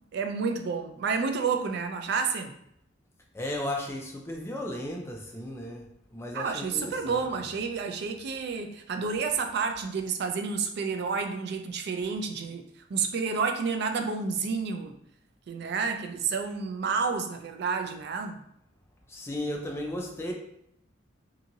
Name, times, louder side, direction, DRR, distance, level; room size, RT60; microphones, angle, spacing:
voice 1, 0.1-2.5 6.3-14.9 15.5-18.4, right 5 dB, 55° right, 6 dB, 0.3 m, -30 dB
voice 2, 3.3-7.4 19.1-20.3, left 1 dB, 15° left, 1 dB, 0.4 m, -35 dB
2.7 x 2.7 x 2.6 m, 0.75 s
head